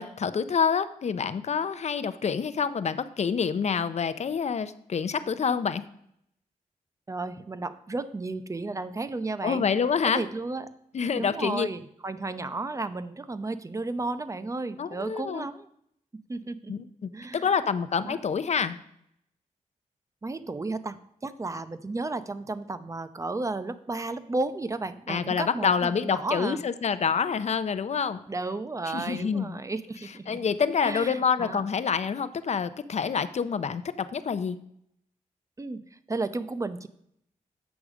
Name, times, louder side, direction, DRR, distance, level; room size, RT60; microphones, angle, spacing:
voice 1, 0.0-5.8 9.4-10.2 10.9-11.7 14.8-15.5 16.7-18.8 25.1-28.2 28.9-29.6 30.3-34.6, left 6 dB, 55° left, 13 dB, 0.6 m, -27 dB
voice 2, 7.1-9.7 10.0-10.7 11.2-15.7 16.3-16.7 17.1-17.5 18.0-18.2 20.2-21.0 21.2-26.6 28.3-30.4 30.8-31.6 35.6-35.8 36.1-36.9, right 3 dB, 25° right, 12 dB, 0.6 m, -33 dB
8.1 x 6.1 x 4.9 m, 0.72 s
wide cardioid pair, 100°, 14 cm